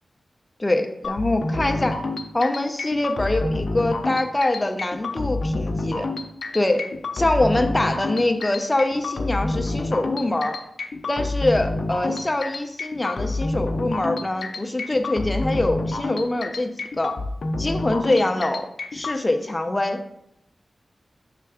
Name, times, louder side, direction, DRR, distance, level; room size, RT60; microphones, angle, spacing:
voice 1, 0.6-2.0 2.3-6.1 6.5-10.6 11.1-17.2 17.6-20.0, left 2 dB, 30° left, 6 dB, 0.7 m, -24 dB
sound 1, 1.0-19.2, left 2 dB, 75° left, 0.7 m, -28 dB
6.7 x 3.4 x 4.9 m, 0.78 s
cardioid pair, 45°, 0 cm